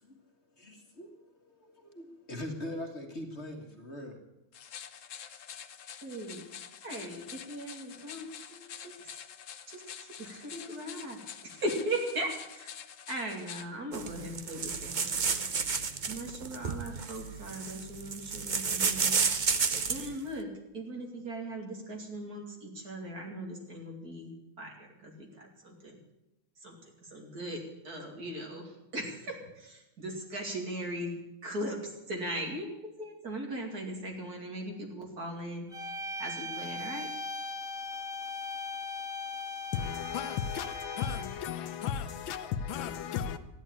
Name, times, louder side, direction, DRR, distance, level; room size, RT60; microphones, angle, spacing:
voice 1, 0.0-4.2, left 1 dB, 35° left, 1.8 m, -42 dB
sound 1, 4.5-13.7, left 8 dB, 55° left, 0.9 m, -47 dB
voice 2, 6.0-6.4 6.8-8.6 9.7-12.7 13.1-15.4 16.0-19.2 19.9-26.0 26.6-26.8 27.1-31.2 31.4-35.7 36.2-37.1, right 1 dB, 50° right, 3.0 m, -39 dB
sound 2, 13.9-20.1, right 5 dB, 90° right, 0.4 m, -31 dB
sound 3, 35.7-41.5, left 3 dB, ahead, 1.3 m, -39 dB
voice 3, 39.7-43.4, left 8 dB, 80° left, 1.6 m, -35 dB
14.0 x 10.5 x 8.8 m
omnidirectional pair, 2.1 m